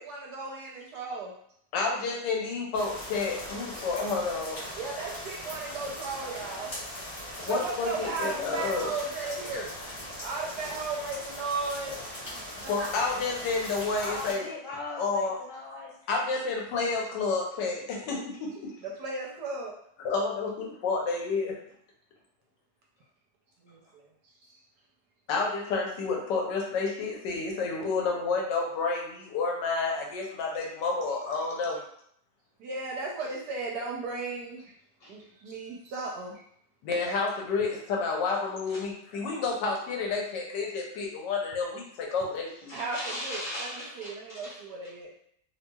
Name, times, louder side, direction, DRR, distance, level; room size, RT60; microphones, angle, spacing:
voice 1, 0.0-1.3 4.8-6.7 7.5-9.7 10.2-12.0 12.6-12.9 16.4-16.6 18.8-19.8 23.6-24.1 24.4-24.6 32.6-34.7 35.1-36.4 42.7-43.7 44.0-45.1, right 3 dB, 70° right, -2 dB, 1.1 m, -35 dB
voice 2, 1.7-4.6 7.4-8.9 12.7-14.5 15.0-15.4 16.1-18.8 20.0-21.6 25.3-31.8 36.8-42.7, left 4 dB, 80° left, -1 dB, 1.3 m, -30 dB
sound 1, 2.7-14.3, left 1 dB, 25° left, 1.1 m, -40 dB
voice 3, 13.9-15.9 30.3-30.9 35.0-35.2 38.7-38.8 42.7-44.6, left 1 dB, 50° left, -6 dB, 1.2 m, -39 dB
2.8 x 2.8 x 2.2 m, 0.68 s
omnidirectional pair, 2.0 m